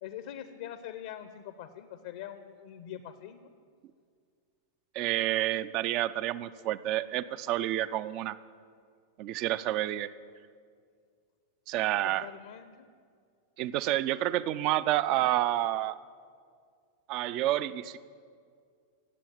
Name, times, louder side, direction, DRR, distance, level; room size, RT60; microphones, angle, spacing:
voice 1, 0.0-3.4 12.0-12.9, left 10 dB, 55° left, 11 dB, 0.7 m, -43 dB
voice 2, 4.9-8.4 9.2-10.1 11.7-12.3 13.6-16.0 17.1-18.0, right 14 dB, 40° right, 15 dB, 0.5 m, -29 dB
17.0 x 7.7 x 8.8 m, 2.2 s
figure-of-eight pair, 90°, 0 cm